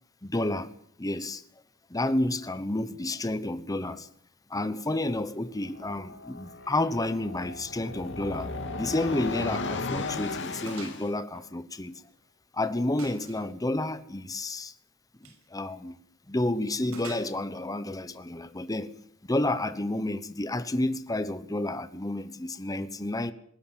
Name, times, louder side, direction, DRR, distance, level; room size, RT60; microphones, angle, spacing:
voice 1, 0.2-0.7 1.0-1.4 1.9-4.1 4.5-12.0 12.5-14.7 15.5-16.0 16.3-18.9 19.3-23.3, left 1 dB, 15° left, 1.0 m, -30 dB
sound 1, 5.6-11.1, left 3 dB, 60° left, 2.7 m, -36 dB
Gunshot gunfire, 8.9-9.1 9.4-9.5 10.0-10.1 10.7-11.0 11.3-12.3 13.0-13.5 15.1-15.4 16.9-17.7, right 4 dB, 80° right, 6.4 m, -47 dB
20.0 x 17.0 x 8.9 m
head